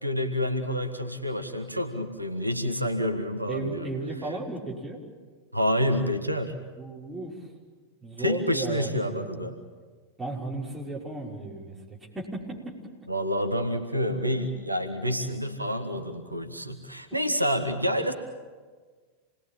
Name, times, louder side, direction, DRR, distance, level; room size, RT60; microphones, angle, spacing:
voice 1, 0.0-3.9 5.5-6.5 8.2-9.6 13.1-18.1, equal, 85° right, 6 dB, 1.7 m, -28 dB
voice 2, 3.5-5.0 6.8-7.5 8.0-9.5 10.2-12.7, right 2 dB, 10° right, -3 dB, 5.8 m, -35 dB
28.5 x 20.5 x 8.9 m, 1.5 s
figure-of-eight pair, 90°, 0 cm